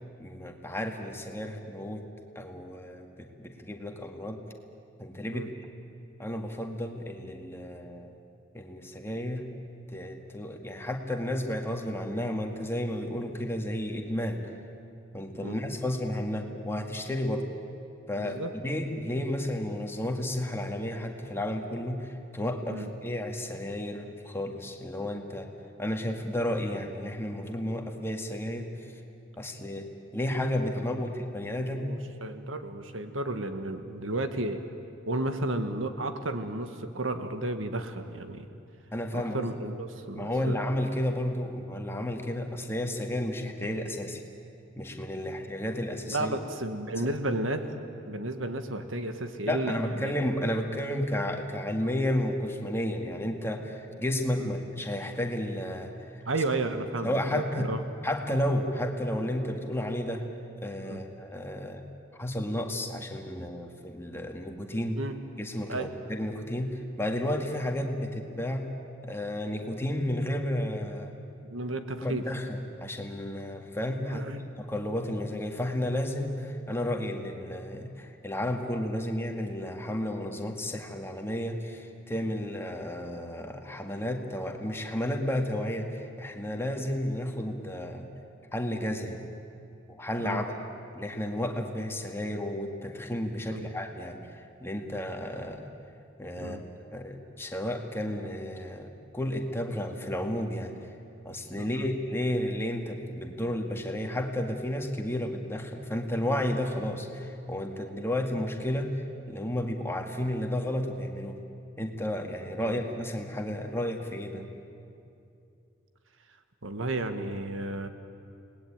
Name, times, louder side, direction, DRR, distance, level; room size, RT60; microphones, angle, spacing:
voice 1, 0.2-2.0 2.4-4.4 5.0-5.5 6.2-8.1 8.5-9.5 9.9-14.5 15.1-17.5 18.1-25.5 25.8-29.0 29.4-32.0 38.9-39.5 40.1-44.2 44.8-46.3 47.0-47.1 49.5-56.2 57.0-57.7 58.0-60.2 60.6-61.8 62.1-65.0 65.4-68.7 69.0-71.1 72.0-74.3 74.7-88.1 88.5-89.2 89.9-90.4 91.0-95.7 96.2-100.7 101.3-111.4 111.8-114.5, left 1 dB, 10° left, 3 dB, 2.0 m, -32 dB
voice 2, 18.1-18.5 22.7-22.9 30.9-31.0 31.7-34.6 35.1-38.5 39.1-40.6 45.2-45.4 46.0-47.7 48.1-50.1 54.4-54.5 56.2-57.8 60.8-61.0 65.0-65.1 65.7-65.9 71.4-72.2 74.1-74.4 90.2-90.4 93.5-93.7 96.4-96.6 101.6-101.9 112.6-112.8 116.6-117.9, right 2 dB, 85° right, 8 dB, 1.7 m, -33 dB
29.5 x 20.0 x 9.0 m, 2.6 s
head